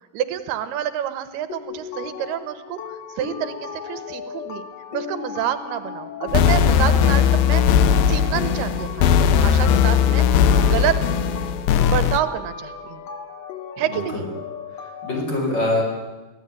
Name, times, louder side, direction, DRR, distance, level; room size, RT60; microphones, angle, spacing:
voice 1, 0.1-4.6 4.9-10.2 10.6-11.0 11.8-13.1 13.8-14.3, right 11 dB, 80° right, 12 dB, 3.1 m, -28 dB
sound 1, 1.5-15.2, left 7 dB, 90° left, 3.9 m, -35 dB
sound 2, 6.3-12.2, left 8 dB, 75° left, 2.6 m, -18 dB
voice 2, 13.9-14.3 14.8-15.8, left 1 dB, 25° left, 0 dB, 6.3 m, -24 dB
24.0 x 16.0 x 9.7 m, 1.1 s
omnidirectional pair, 4.5 m